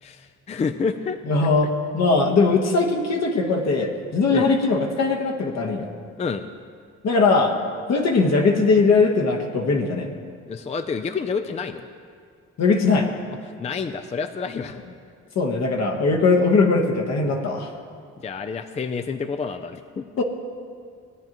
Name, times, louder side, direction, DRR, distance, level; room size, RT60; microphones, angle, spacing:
voice 1, 0.0-1.2 4.3-4.5 6.2-6.4 10.5-11.8 13.6-14.8 18.2-20.1, left 5 dB, 20° left, 8 dB, 0.4 m, -28 dB
voice 2, 1.3-5.9 7.0-7.5 7.9-10.1 12.6-13.1 15.3-17.7 20.2-20.3, left 3 dB, 60° left, 2 dB, 1.2 m, -20 dB
16.5 x 9.3 x 3.0 m, 2.2 s
cardioid pair, 90°, 30 cm